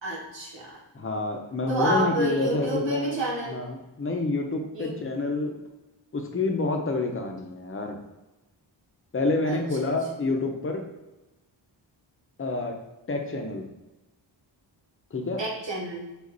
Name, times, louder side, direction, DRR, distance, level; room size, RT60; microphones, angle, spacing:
voice 1, 0.0-0.8 1.7-3.6 4.7-5.0 9.4-9.9 10.2-10.3 15.4-16.1, right 1 dB, 70° right, -4 dB, 1.5 m, -29 dB
voice 2, 0.9-3.2 3.5-5.5 6.1-8.0 9.1-10.8 12.4-12.7 13.1-13.7 15.1-15.4, left 2 dB, 30° left, 3 dB, 0.8 m, -28 dB
5.1 x 2.6 x 4.0 m, 1.0 s
wide cardioid pair, 85°, 46 cm